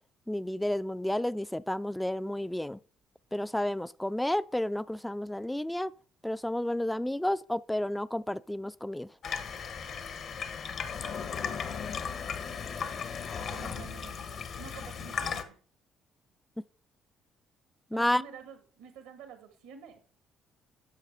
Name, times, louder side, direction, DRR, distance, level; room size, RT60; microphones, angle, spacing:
voice 1, 0.3-2.8 3.3-5.9 6.2-9.1 17.9-18.2, left 1 dB, 5° left, 0.3 m, -31 dB
Water tap faucet / Sink (filling or washing), 9.2-15.4, left 6 dB, 60° left, 1.0 m, -36 dB
voice 2, 12.5-12.9 13.5-15.6 17.9-20.0, right 7 dB, 90° right, 1.7 m, -49 dB
10.0 x 6.5 x 3.6 m
supercardioid pair, 60°, 0 cm